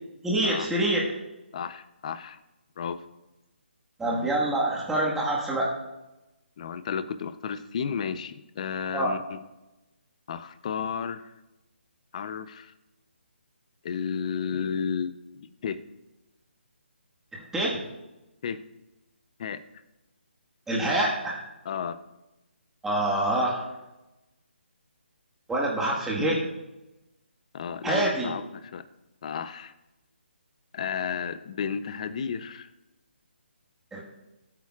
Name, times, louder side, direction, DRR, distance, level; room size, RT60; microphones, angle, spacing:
voice 1, 0.2-1.2 4.0-5.7 8.9-9.1 17.3-17.8 20.7-21.4 22.8-23.7 25.5-26.4 27.8-28.3 33.9-34.0, right 1 dB, 5° right, -4 dB, 1.6 m, -26 dB
voice 2, 1.5-2.4 2.8-3.0 6.6-9.4 10.3-11.3 12.1-12.7 13.8-15.8 18.4-18.6 19.4-19.6 21.6-22.0 26.1-26.5 27.5-28.9 29.2-29.7 30.7-32.7, left 7 dB, 35° left, 13 dB, 0.6 m, -33 dB
19.5 x 8.5 x 2.4 m, 1.0 s
hypercardioid pair, 160°, 6 cm